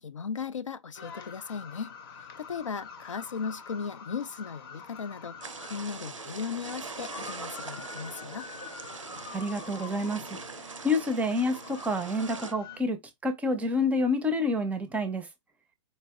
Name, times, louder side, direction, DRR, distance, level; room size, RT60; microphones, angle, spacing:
voice 1, 0.0-1.9 2.4-8.5, left 6 dB, 80° left, 0.4 m, -37 dB
sound 1, 0.9-12.8, left 5 dB, 50° left, 0.7 m, -46 dB
sound 2, 5.4-12.5, right 4 dB, 85° right, 0.5 m, -42 dB
voice 2, 9.3-10.2 10.8-15.3, left 2 dB, 10° right, 0.5 m, -28 dB
4.2 x 2.6 x 2.3 m
figure-of-eight pair, 110°, 16 cm